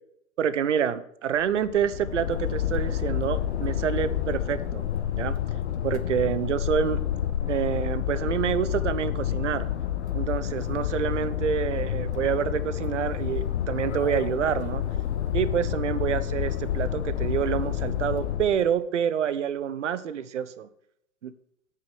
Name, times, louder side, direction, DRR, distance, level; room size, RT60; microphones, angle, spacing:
voice 1, 0.4-5.4 5.8-7.0 7.4-9.7 10.1-14.8 15.3-20.7 21.2-21.3, right 8 dB, 60° right, 14 dB, 1.1 m, -27 dB
sound 1, 1.4-18.6, left 10 dB, 55° left, 1.6 m, -29 dB
8.9 x 8.9 x 6.3 m, 0.74 s
figure-of-eight pair, 105°, 41 cm